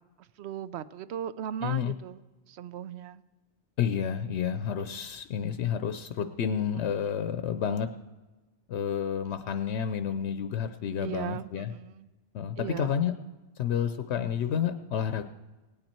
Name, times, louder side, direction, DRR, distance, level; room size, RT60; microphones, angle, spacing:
voice 1, 0.2-3.2 6.7-7.2 11.0-12.1 12.6-13.0, right 10 dB, 75° right, 15 dB, 0.9 m, -38 dB
voice 2, 1.6-1.9 3.8-7.9 8.7-11.7 12.3-13.1 13.6-15.2, left 8 dB, 85° left, 9 dB, 0.9 m, -30 dB
18.0 x 8.9 x 4.4 m, 1.2 s
omnidirectional pair, 1.1 m